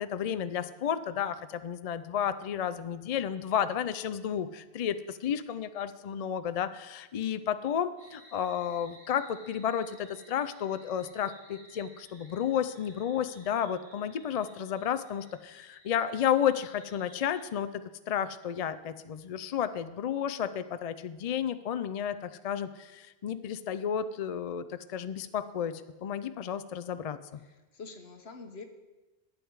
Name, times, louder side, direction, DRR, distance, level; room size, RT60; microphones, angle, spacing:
voice 1, 0.0-17.7 18.1-27.4, left 9 dB, 55° left, 12 dB, 0.4 m, -32 dB
sound 1, 8.0-17.5, right 1 dB, 65° right, 3.0 m, -57 dB
voice 2, 27.4-28.6, left 4 dB, 75° left, 6 dB, 1.3 m, -46 dB
11.5 x 9.4 x 4.7 m, 1.1 s
omnidirectional pair, 1.1 m